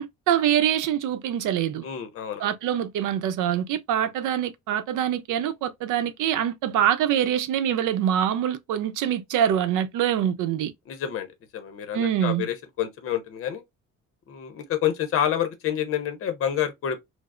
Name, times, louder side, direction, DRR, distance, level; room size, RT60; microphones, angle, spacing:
voice 1, 0.0-1.9 2.4-10.7 11.9-12.5, right 10 dB, 85° right, 0.6 m, -24 dB
voice 2, 1.8-2.5 10.9-11.3 11.5-13.6 14.3-17.0, left 10 dB, 45° left, 0.7 m, -28 dB
4.8 x 2.0 x 2.4 m
cardioid pair, 180°, 30 cm